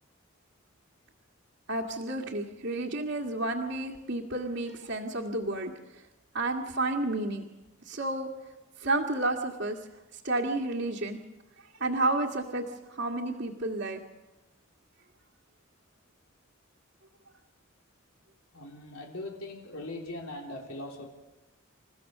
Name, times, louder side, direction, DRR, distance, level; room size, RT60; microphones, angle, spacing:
voice 1, 1.7-5.7 6.3-7.4 7.9-8.3 8.8-9.8 10.2-11.2 11.8-14.0, right 2 dB, 60° right, -2 dB, 1.9 m, -31 dB
voice 2, 18.5-21.1, left 2 dB, 85° left, 0 dB, 3.4 m, -40 dB
28.5 x 15.0 x 6.7 m, 1.1 s
head